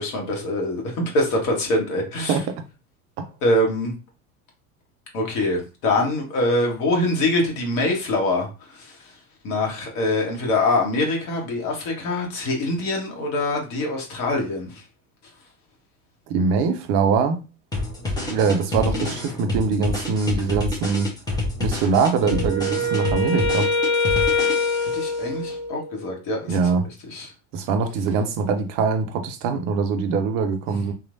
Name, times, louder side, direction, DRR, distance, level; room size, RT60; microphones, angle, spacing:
voice 1, 0.0-2.3 3.4-3.9 5.1-9.0 9.4-14.8 18.9-19.1 24.9-26.6 27.1-27.3 30.7-30.8, left 2 dB, 40° left, 1.1 m, -24 dB
voice 2, 2.3-2.6 3.2-3.3 16.3-17.4 18.3-21.1 21.6-23.7 26.5-26.9 27.5-30.9, right 5 dB, 35° right, 0.4 m, -23 dB
sound 1, 17.7-25.0, left 2 dB, 10° left, 1.0 m, -28 dB
Wind instrument woodwind instrument, 22.2-26.1, left 2 dB, 70° left, 0.9 m, -24 dB
3.0 x 2.3 x 2.6 m
figure-of-eight pair, 75°, 44 cm